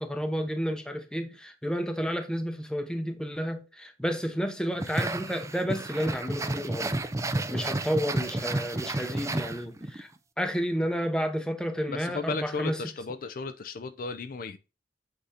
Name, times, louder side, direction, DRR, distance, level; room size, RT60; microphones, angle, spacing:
voice 1, 0.0-6.9 7.5-10.1 10.4-12.8, equal, 5° left, 0.8 m, -31 dB
sound 1, 4.8-10.0, right 2 dB, 15° right, 0.4 m, -31 dB
voice 2, 11.9-14.6, left 4 dB, 50° left, 0.4 m, -35 dB
7.9 x 2.7 x 4.9 m
head